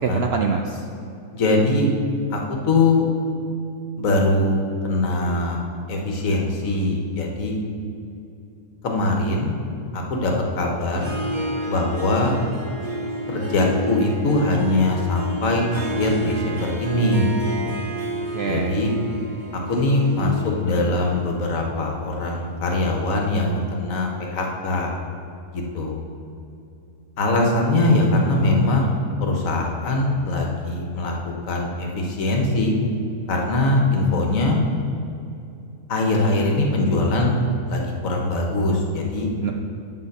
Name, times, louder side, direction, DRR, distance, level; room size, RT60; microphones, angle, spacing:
voice 1, 0.0-0.9 18.2-18.8 39.4-39.5, right 5 dB, 70° right, 2 dB, 0.6 m, -25 dB
voice 2, 1.3-1.9 2.3-2.4 2.7-3.1 4.0-4.5 4.8-5.6 5.9-7.6 8.8-9.5 9.9-11.1 11.6-12.4 13.3-17.3 17.6-17.8 18.5-18.9 19.7-20.3 20.6-24.9 25.5-26.0 27.2-28.9 29.2-32.7 33.3-34.6 35.9-37.4 37.7-39.3, left 2 dB, 60° left, 0 dB, 1.5 m, -22 dB
Harp, 10.9-22.8, right 1 dB, 35° right, 1.0 m, -31 dB
8.4 x 5.0 x 6.5 m, 2.7 s
omnidirectional pair, 1.6 m